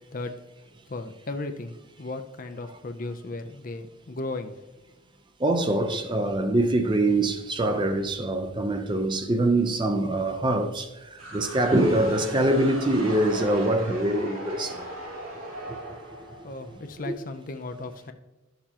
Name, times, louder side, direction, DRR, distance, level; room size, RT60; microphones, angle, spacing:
voice 1, 0.9-1.7 2.0-4.6 16.4-18.1, left 2 dB, 40° left, 0.5 m, -35 dB
voice 2, 5.4-14.8, right 1 dB, 20° right, 0.6 m, -24 dB
sound 1, 11.2-16.9, right 1 dB, 80° right, 3.1 m, -38 dB
11.5 x 6.7 x 2.9 m
head